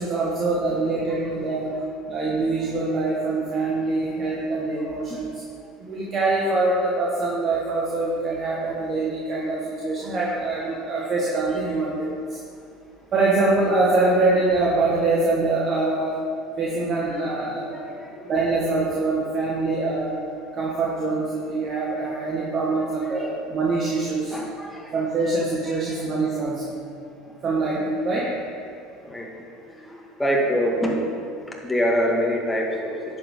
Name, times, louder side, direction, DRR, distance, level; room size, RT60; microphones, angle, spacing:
voice 1, 0.0-1.7 2.1-5.4 5.8-12.4 13.1-16.2 16.6-18.0 18.3-20.2 20.5-24.4 24.9-26.8 27.4-28.3, right 3 dB, 40° right, -4 dB, 1.7 m, -24 dB
voice 2, 0.7-1.3 1.7-1.8 5.1-5.2 10.6-10.8 17.0-17.3 17.7-18.2 23.0-23.3 24.3-24.9 25.6-26.0 29.0-29.3 29.7-31.0 31.6-33.0, equal, 10° left, -1 dB, 2.0 m, -26 dB
10.5 x 7.9 x 3.8 m, 2.4 s
hypercardioid pair, 70°, 0 cm